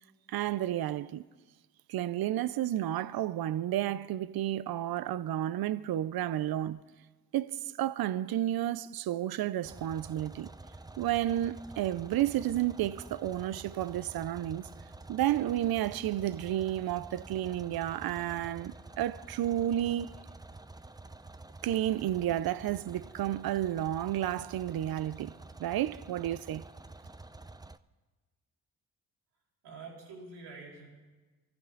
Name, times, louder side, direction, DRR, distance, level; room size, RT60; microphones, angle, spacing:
voice 1, 0.3-1.2 1.9-6.8 7.3-10.5 11.0-14.7 15.1-20.1 21.6-25.3 25.6-26.6, right 12 dB, 60° right, 0.7 m, -31 dB
sound 1, 9.6-27.8, right 2 dB, 10° right, 0.6 m, -49 dB
voice 2, 29.6-31.0, right 4 dB, 80° right, 4.4 m, -47 dB
24.0 x 14.5 x 3.9 m
supercardioid pair, 50°, 40 cm